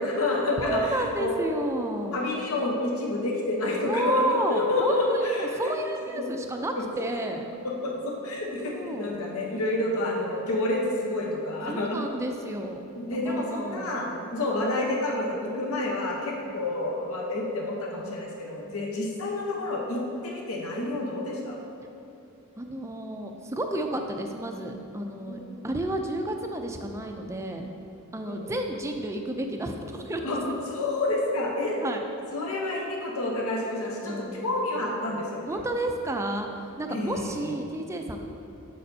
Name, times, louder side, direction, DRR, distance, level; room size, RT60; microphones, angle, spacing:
voice 1, 0.0-1.3 2.1-5.7 6.1-6.3 7.6-12.0 12.9-21.6 25.3-25.4 28.3-28.5 30.2-30.4 30.7-31.8 32.3-35.6 36.9-37.5, left 2 dB, 70° left, -1 dB, 0.9 m, -29 dB
voice 2, 0.6-2.3 3.8-7.4 8.6-9.1 11.7-14.1 16.4-16.6 18.7-18.9 22.6-27.7 28.1-30.3 31.8-32.0 34.0-34.4 35.5-38.2, right 1 dB, 15° right, 4 dB, 0.4 m, -31 dB
7.6 x 6.6 x 2.7 m, 2.9 s
head